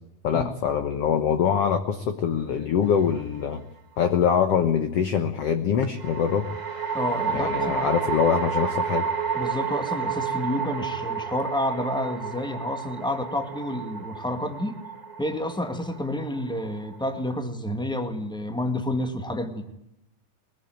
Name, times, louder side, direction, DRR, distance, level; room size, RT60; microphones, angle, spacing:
voice 1, 0.2-3.6 4.0-6.5 7.3-9.0, left 7 dB, 60° left, 8 dB, 1.7 m, -24 dB
sound 1, 2.8-3.5 6.0-17.3, right 6 dB, 30° right, 0.8 m, -31 dB
voice 2, 6.9-7.8 9.3-14.8 15.2-19.6, left 1 dB, 5° left, 7 dB, 0.7 m, -29 dB
22.5 x 21.5 x 9.2 m, 0.81 s
omnidirectional pair, 4.1 m